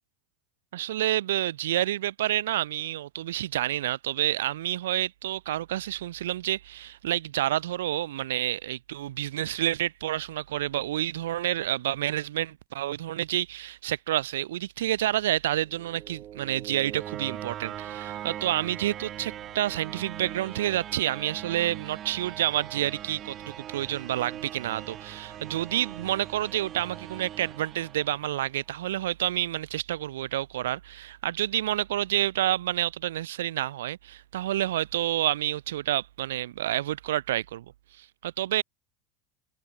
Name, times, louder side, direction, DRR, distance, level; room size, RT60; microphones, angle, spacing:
voice 1, 0.7-37.7 38.0-38.6, right 13 dB, 85° right, 2.0 m, -29 dB
sound 1, 15.6-28.6, right 11 dB, 45° right, 3.3 m, -41 dB
supercardioid pair, 100°, 0 cm